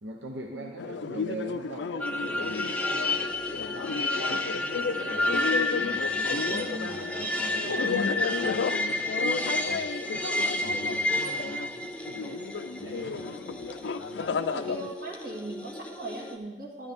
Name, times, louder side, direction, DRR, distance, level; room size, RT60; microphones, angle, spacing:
voice 1, 0.0-12.5 12.8-13.7, right 1 dB, 80° right, 1 dB, 0.9 m, -43 dB
sound 1, 0.8-14.9, left 5 dB, 75° left, 0.4 m, -33 dB
sound 2, 2.0-16.3, left 1 dB, 5° left, 0.5 m, -31 dB
voice 2, 14.2-16.9, right 2 dB, 55° right, -1 dB, 1.9 m, -39 dB
12.0 x 9.5 x 3.5 m, 1.2 s
head